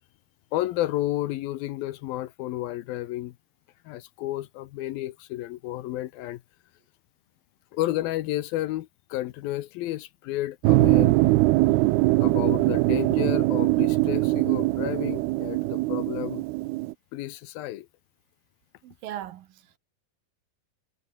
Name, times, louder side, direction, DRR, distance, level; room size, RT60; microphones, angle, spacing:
voice 1, 0.5-3.4 3.9-6.4 7.7-11.2 12.2-16.4 17.1-17.9, left 15 dB, 80° left, 2.6 m, -31 dB
sound 1, 10.6-16.9, right 20 dB, 85° right, 2.7 m, -22 dB
voice 2, 11.6-12.0 18.8-19.8, right 12 dB, 70° right, 2.7 m, -40 dB
omnidirectional pair, 4.5 m